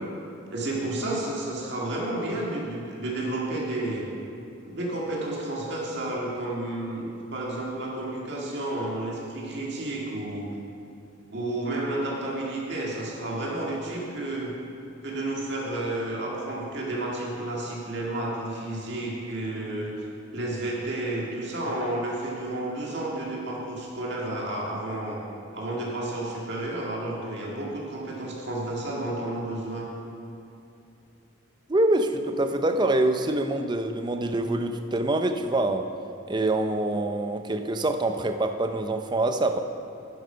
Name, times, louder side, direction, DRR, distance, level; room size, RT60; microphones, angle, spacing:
voice 1, 0.5-4.1 4.6-10.5 11.3-14.5 15.0-20.0 20.3-25.2 25.5-29.9, right 1 dB, 55° right, -4 dB, 1.9 m, -31 dB
voice 2, 31.7-35.8 36.3-39.6, right 2 dB, 20° right, 6 dB, 0.5 m, -25 dB
10.0 x 7.6 x 5.6 m, 2.7 s
head